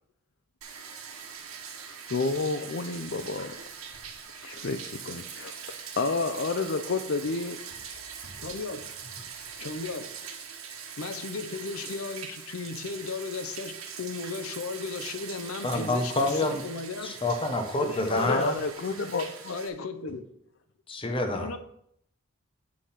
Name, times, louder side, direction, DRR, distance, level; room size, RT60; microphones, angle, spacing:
Bathtub (filling or washing), 0.6-19.7, right 6 dB, 90° right, 1.4 m, -42 dB
voice 1, 2.1-3.5 4.4-7.6 18.1-19.5, left 3 dB, 55° left, 6 dB, 0.6 m, -30 dB
voice 2, 8.4-8.9 9.6-10.2 11.0-17.1 17.8-18.5 19.5-20.3 21.3-21.6, left 4 dB, 90° left, 8 dB, 0.7 m, -36 dB
voice 3, 15.6-16.6 17.0-18.5 20.9-21.5, left 2 dB, 25° left, 5 dB, 1.0 m, -27 dB
8.5 x 4.9 x 5.8 m, 0.72 s
head